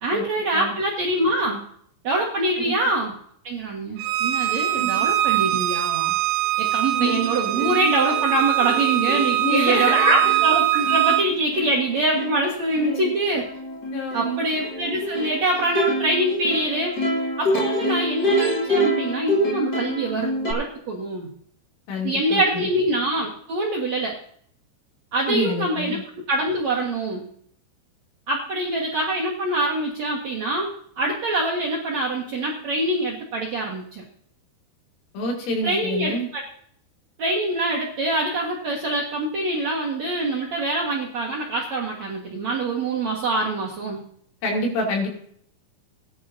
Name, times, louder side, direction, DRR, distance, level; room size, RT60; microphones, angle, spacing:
voice 1, 0.0-1.6 2.0-3.2 3.4-6.1 6.6-13.4 14.1-17.0 17.4-21.3 22.0-24.2 25.1-26.0 26.3-27.3 28.3-30.7 31.0-34.0 35.6-36.4 37.2-44.0, right 2 dB, 60° right, -4 dB, 1.8 m, -24 dB
Bowed string instrument, 4.0-11.2, right 14 dB, 80° right, 3.2 m, -22 dB
voice 2, 4.7-5.1 6.9-7.2 9.4-10.3 12.7-13.1 13.9-14.4 21.9-22.7 25.3-26.0 35.1-36.3 44.4-45.1, left 1 dB, 85° left, 0 dB, 5.4 m, -27 dB
Plucked string instrument, 6.6-6.7 7.0-20.5, equal, 40° left, 1.5 m, -27 dB
18.0 x 10.5 x 2.7 m, 0.63 s
omnidirectional pair, 5.5 m